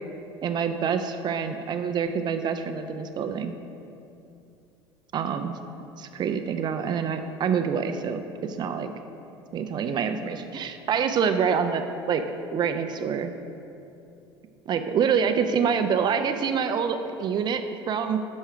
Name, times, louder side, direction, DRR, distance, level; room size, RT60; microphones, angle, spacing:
voice 1, 0.4-3.6 5.1-5.6 6.0-8.9 9.5-12.2 12.5-13.3 14.7-18.2, right 6 dB, 35° right, 8 dB, 0.4 m, -26 dB
6.2 x 5.4 x 4.8 m, 2.7 s
figure-of-eight pair, 70°, 13 cm